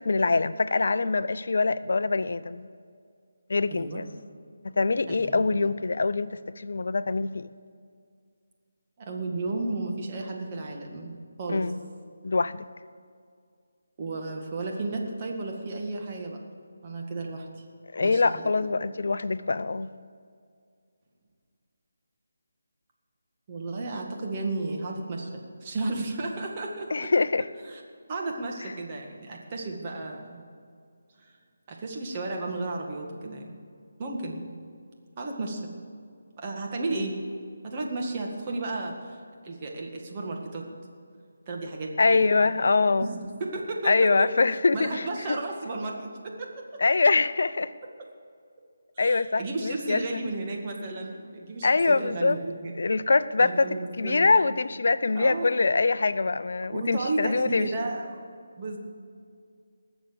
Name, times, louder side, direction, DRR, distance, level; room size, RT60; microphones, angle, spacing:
voice 1, 0.0-2.7 3.5-4.1 4.8-7.5 11.5-11.8 12.2-12.6 17.9-19.9 26.9-27.5 42.0-43.1 43.8-45.4 46.8-47.7 49.0-50.2 51.6-52.4 52.8-53.7 54.0-57.7, left 3 dB, 65° left, 15 dB, 0.5 m, -24 dB
voice 2, 3.7-4.0 5.1-5.5 9.0-11.7 14.0-16.4 16.8-17.6 18.0-18.2 23.5-27.1 27.6-27.8 28.1-30.4 31.2-31.3 31.7-33.5 34.0-34.5 35.2-35.7 36.4-37.2 37.6-40.7 41.5-42.3 43.0-44.3 44.7-46.8 49.0-52.7 53.4-54.2 55.1-55.5 56.7-58.2 58.6-58.8, right 2 dB, 30° right, 0 dB, 2.0 m, -33 dB
19.5 x 7.1 x 7.0 m, 2.2 s
figure-of-eight pair, 160°, 0 cm